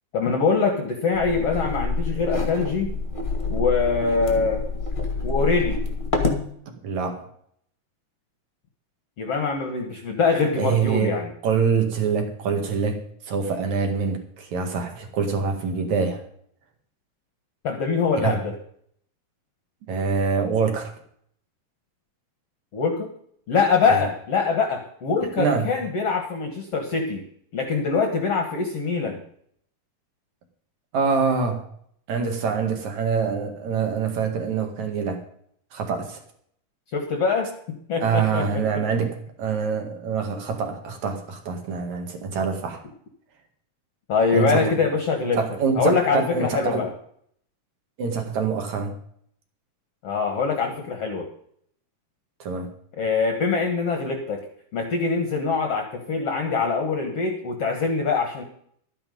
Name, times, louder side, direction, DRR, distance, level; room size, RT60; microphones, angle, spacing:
voice 1, 0.1-2.9 3.5-4.6 5.2-5.8 9.2-11.3 17.6-18.6 22.7-23.1 23.5-27.2 27.5-29.2 36.9-37.5 37.9-38.6 44.1-45.4 45.7-46.9 50.0-51.3 53.0-54.4 54.7-58.4, left 4 dB, 60° left, 5 dB, 1.6 m, -23 dB
sound 1, 1.1-6.5, left 3 dB, 25° left, 1.2 m, -27 dB
voice 2, 6.8-7.2 10.6-11.1 11.4-16.2 18.2-18.4 19.9-20.9 23.9-24.0 25.4-25.7 30.9-31.6 32.1-35.2 35.7-36.2 38.0-42.8 44.3-44.7 45.3-46.9 48.0-48.9 52.4-52.7, right 5 dB, 55° right, 4 dB, 2.9 m, -25 dB
13.0 x 10.0 x 5.3 m, 0.65 s
omnidirectional pair, 4.6 m